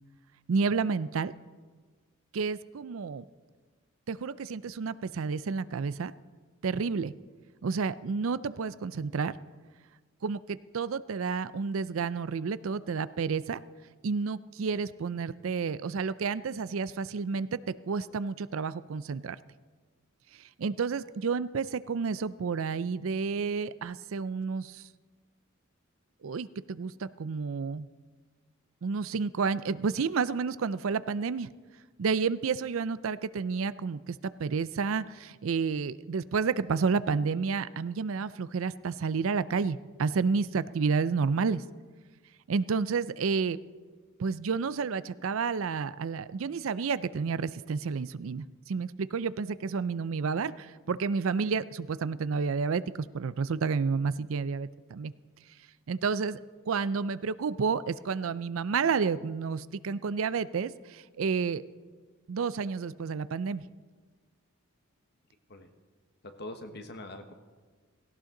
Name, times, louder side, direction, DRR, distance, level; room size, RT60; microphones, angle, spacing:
voice 1, 0.5-1.3 2.3-3.2 4.1-6.1 6.6-7.1 7.6-9.3 10.2-13.6 14.0-19.4 20.6-24.8 26.2-27.9 28.8-31.5 32.0-41.6 42.5-43.6 44.2-55.1 55.9-56.4 56.7-61.6 62.3-63.6, right 5 dB, 70° right, 16 dB, 0.4 m, -30 dB
voice 2, 66.2-67.3, left 1 dB, 50° left, 7 dB, 1.2 m, -43 dB
17.5 x 17.0 x 3.8 m, 1.4 s
head